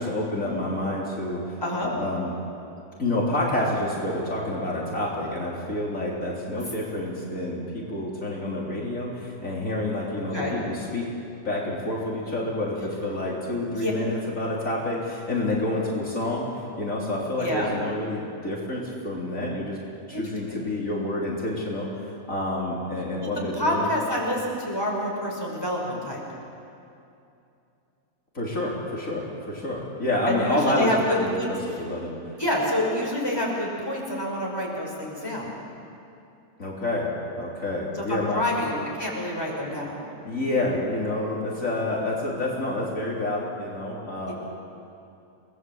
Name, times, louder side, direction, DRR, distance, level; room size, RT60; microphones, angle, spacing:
voice 1, 0.0-2.3 3.0-11.1 11.4-16.4 16.8-19.8 20.1-23.9 28.3-30.9 31.2-32.2 36.6-37.1 37.4-38.4 40.2-44.3, left 1 dB, 65° left, -4 dB, 4.1 m, -28 dB
voice 2, 1.6-1.9 10.3-10.6 13.7-13.9 17.4-17.7 20.1-20.2 20.5-20.6 23.2-26.2 30.3-31.5 32.4-35.5 37.9-40.0 44.3-44.4, left 1 dB, 15° left, -3 dB, 5.8 m, -27 dB
29.5 x 20.0 x 8.0 m, 2.7 s
omnidirectional pair, 1.5 m